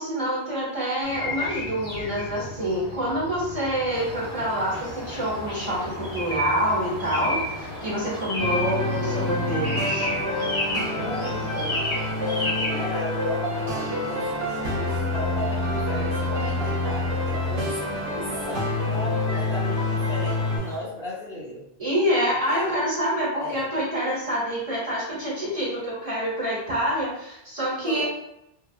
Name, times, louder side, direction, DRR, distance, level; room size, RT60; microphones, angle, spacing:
voice 1, 0.0-10.1 21.8-28.0, equal, 35° right, -7 dB, 1.1 m, -27 dB
sound 1, 1.0-12.1, left 2 dB, 85° left, 1.5 m, -39 dB
sound 2, 3.9-20.8, equal, 30° left, 1.0 m, -34 dB
sound 3, 8.4-20.6, left 2 dB, 75° right, 0.9 m, -27 dB
voice 2, 11.0-11.8 12.1-21.6 22.5-22.8 23.4-23.7 27.8-28.0, left 1 dB, 60° left, -11 dB, 1.0 m, -35 dB
2.8 x 2.2 x 2.3 m, 0.83 s
omnidirectional pair, 1.1 m